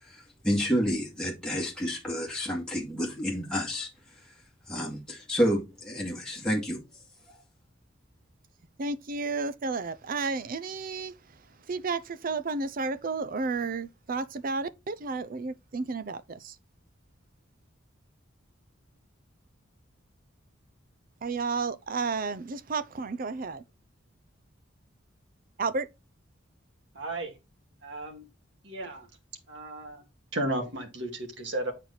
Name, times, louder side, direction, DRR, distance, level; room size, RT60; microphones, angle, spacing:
voice 1, 0.0-3.9 4.7-6.8, equal, 5° left, 2.1 m, -29 dB
voice 2, 8.8-11.1 11.7-16.5 21.2-23.6 25.6-25.9, right 4 dB, 45° right, 0.5 m, -32 dB
voice 3, 26.9-27.4 27.8-28.2 28.6-29.1 29.5-30.0 30.3-31.7, right 1 dB, 65° right, 2.0 m, -34 dB
8.7 x 4.4 x 4.0 m
head